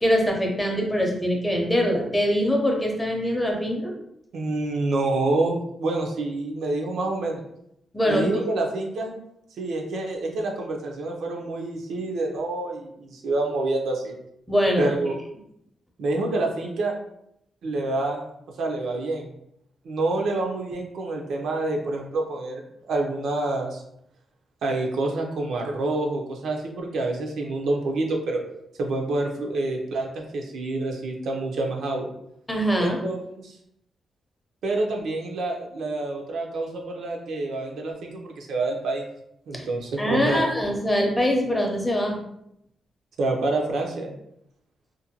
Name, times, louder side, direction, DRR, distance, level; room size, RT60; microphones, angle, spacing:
voice 1, 0.0-3.9 7.9-8.3 14.5-14.9 32.5-33.0 39.5-39.6 40.0-42.2, equal, 10° left, 0 dB, 0.6 m, -23 dB
voice 2, 4.3-7.4 8.0-9.1 9.6-14.1 14.8-15.2 16.0-16.9 17.6-18.3 18.6-19.3 19.8-22.6 22.9-23.8 24.6-28.4 28.8-32.1 32.8-33.5 34.6-39.0 39.5-40.5 43.2-44.2, right 2 dB, 80° right, 1 dB, 0.5 m, -27 dB
2.5 x 2.1 x 2.7 m, 0.76 s
cardioid pair, 120°, 0 cm